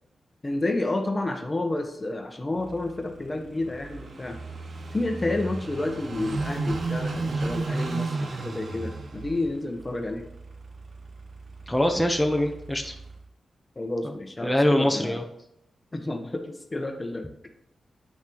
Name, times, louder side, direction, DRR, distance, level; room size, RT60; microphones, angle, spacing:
voice 1, 0.4-4.4 4.9-10.3 13.8-15.2 15.9-17.3, left 2 dB, 30° left, 5 dB, 1.1 m, -30 dB
Car passing by / Idling, 2.6-13.2, right 3 dB, 60° right, 1.0 m, -34 dB
voice 2, 11.7-12.9 14.4-15.2, left 1 dB, 5° left, 2 dB, 1.0 m, -23 dB
8.4 x 5.8 x 3.1 m, 0.82 s
supercardioid pair, 45°, 0 cm